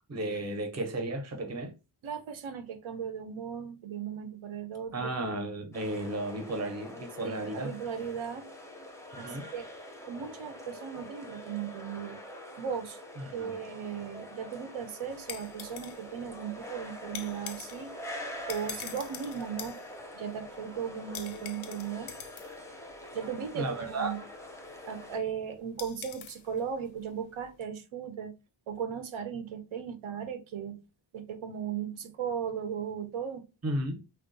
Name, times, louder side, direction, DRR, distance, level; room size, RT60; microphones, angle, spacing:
voice 1, 0.1-1.7 4.9-7.7 9.1-9.4 13.2-13.5 23.5-24.1 33.6-34.0, right 1 dB, 35° right, 0.7 m, -34 dB
voice 2, 2.0-5.1 7.2-8.5 9.2-9.7 10.1-12.2 12.6-13.0 13.3-17.9 18.5-19.8 20.1-22.1 23.1-24.2 24.8-28.3 28.7-30.8 31.1-33.4, right 7 dB, 90° right, 0.6 m, -37 dB
sound 1, 5.7-25.2, left 1 dB, 5° left, 0.4 m, -45 dB
sound 2, 15.1-27.6, left 8 dB, 75° left, 0.5 m, -47 dB
3.5 x 2.3 x 2.5 m
wide cardioid pair, 150°, 47 cm